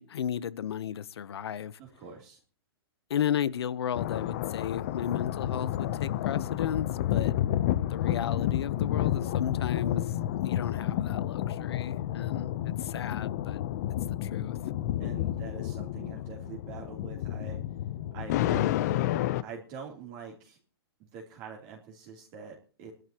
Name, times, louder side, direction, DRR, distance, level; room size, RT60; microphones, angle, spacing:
voice 1, 0.0-1.8 3.1-7.3 7.9-13.6 14.1-14.6, left 9 dB, 80° left, 1.0 m, -34 dB
voice 2, 1.8-2.4 15.0-17.6 18.1-18.8 19.4-20.6 21.0-22.9, right 6 dB, 30° right, 3.3 m, -44 dB
sound 1, 4.0-19.4, left 12 dB, 40° left, 0.7 m, -30 dB
22.0 x 12.0 x 3.0 m
hypercardioid pair, 160°, 13 cm